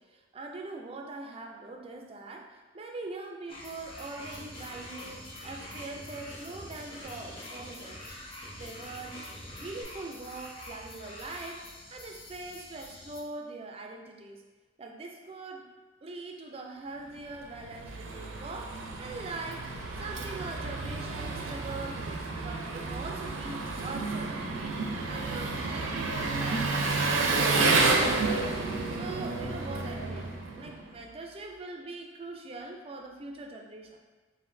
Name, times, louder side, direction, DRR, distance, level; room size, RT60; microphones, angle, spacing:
voice 1, 0.0-8.0 8.3-9.3 9.6-11.6 11.9-14.4 14.8-15.7 16.0-19.7 20.0-28.5 28.9-34.0, right 3 dB, 30° right, 2 dB, 0.4 m, -42 dB
sound 1, 3.5-13.2, left 1 dB, 30° left, 0.5 m, -47 dB
sound 2, 4.2-9.8, left 1 dB, 85° left, 1.2 m, -47 dB
Engine, 17.3-30.9, right 3 dB, 90° right, 0.5 m, -30 dB
5.5 x 2.6 x 2.6 m, 1.2 s
head